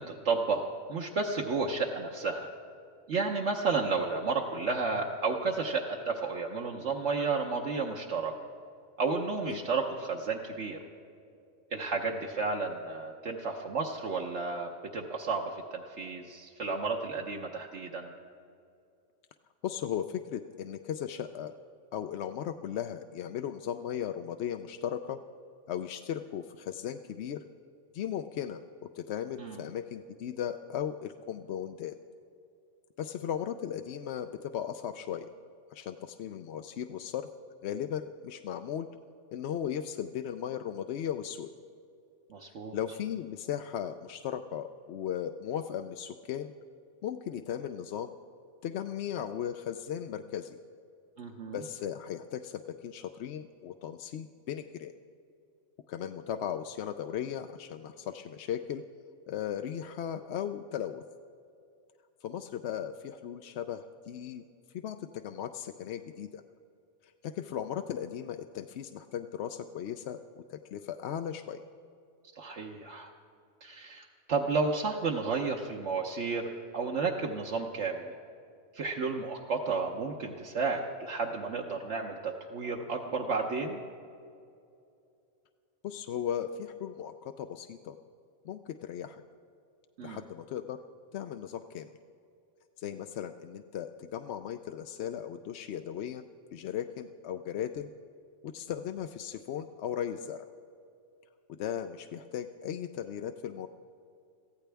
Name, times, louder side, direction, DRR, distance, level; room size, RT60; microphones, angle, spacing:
voice 1, 0.0-2.5 3.1-8.3 9.0-10.8 11.7-18.1 29.4-29.6 42.3-42.8 51.2-51.6 72.4-73.1 73.6-78.1 78.7-83.8 90.0-90.2, right 4 dB, 70° right, 0 dB, 1.2 m, -32 dB
voice 2, 19.6-21.5 21.9-25.2 25.7-27.4 27.9-28.6 29.0-31.9 33.0-35.3 35.7-37.3 37.6-38.9 39.3-41.5 42.7-46.5 47.0-48.1 48.6-50.6 51.5-54.9 55.9-58.8 59.3-61.0 62.2-64.4 64.8-66.4 67.2-71.6 85.8-88.0 88.4-89.2 90.0-90.8 91.1-91.9 92.8-96.2 96.5-97.9 98.4-100.5 101.5-103.7, left 9 dB, 65° left, 8 dB, 0.8 m, -37 dB
23.0 x 15.0 x 3.4 m, 2.5 s
omnidirectional pair, 1.3 m